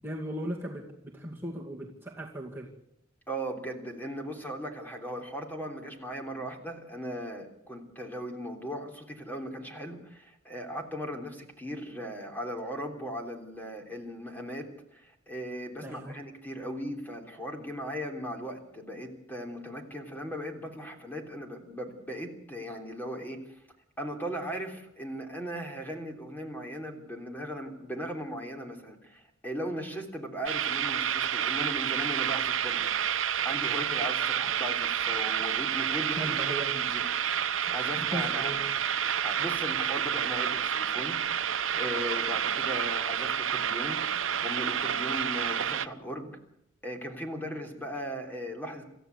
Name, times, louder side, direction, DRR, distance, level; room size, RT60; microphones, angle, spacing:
voice 1, 0.0-2.7 15.8-16.2 36.2-36.8 38.0-38.6, right 1 dB, 10° right, -2 dB, 2.3 m, -37 dB
voice 2, 3.3-23.4 24.0-32.9 33.4-38.6 39.2-41.2 41.7-44.0 44.4-46.3 46.8-48.8, equal, 10° left, 3 dB, 3.4 m, -38 dB
sound 1, 30.5-45.9, right 9 dB, 75° right, 0.9 m, -29 dB
27.5 x 14.5 x 8.1 m, 0.79 s
head